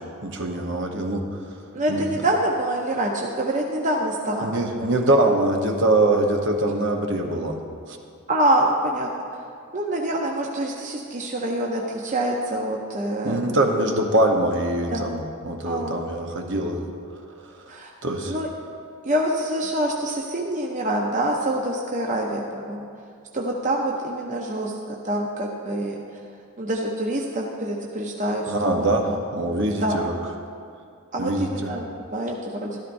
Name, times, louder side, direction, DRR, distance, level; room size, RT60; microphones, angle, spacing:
voice 1, 0.2-1.5 1.9-2.0 4.4-7.6 7.9-8.0 13.2-16.9 17.5-17.7 18.0-18.3 28.5-30.1 31.2-31.7, right 1 dB, 55° right, 3 dB, 0.9 m, -23 dB
voice 2, 1.7-4.5 8.3-9.2 9.7-13.5 14.9-15.1 15.6-16.0 17.7-17.9 18.3-18.5 19.0-22.9 23.3-26.0 26.6-29.2 29.8-30.0 31.1-32.8, right 1 dB, 35° right, -1 dB, 0.7 m, -26 dB
13.5 x 12.5 x 2.6 m, 2.4 s
head